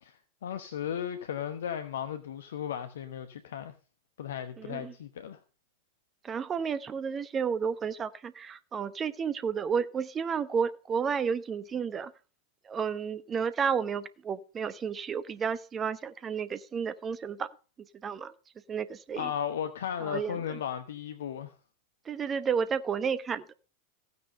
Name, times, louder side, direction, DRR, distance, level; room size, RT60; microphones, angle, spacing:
voice 1, 0.0-3.7 4.2-5.4 19.2-21.5, left 9 dB, 60° left, 1.1 m, -35 dB
voice 2, 4.6-4.9 6.2-12.1 12.6-17.5 18.0-18.3 18.7-19.3 20.0-20.6 22.0-23.4, right 6 dB, 20° right, 1.0 m, -31 dB
15.0 x 9.6 x 5.5 m
figure-of-eight pair, 90°, 0 cm